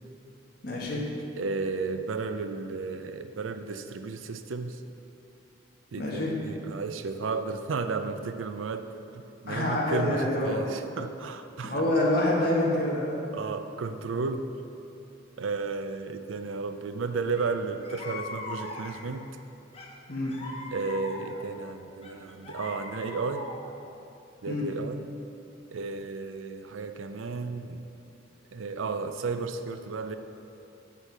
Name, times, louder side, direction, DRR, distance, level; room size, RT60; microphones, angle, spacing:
voice 1, 0.6-1.0 6.0-6.3 9.5-10.6 11.6-13.2 20.1-20.3 24.5-24.7, left 1 dB, 55° left, -4 dB, 1.6 m, -26 dB
voice 2, 1.4-4.8 5.9-11.8 13.3-14.5 15.4-19.3 20.7-23.5 24.4-25.0 25.7-27.9 28.5-30.2, right 4 dB, 85° right, 9 dB, 0.5 m, -33 dB
sound 1, 17.3-17.5 17.8-19.2 19.7-21.5 22.0-23.8, left 2 dB, 30° left, 0.9 m, -40 dB
7.3 x 6.8 x 4.7 m, 2.8 s
head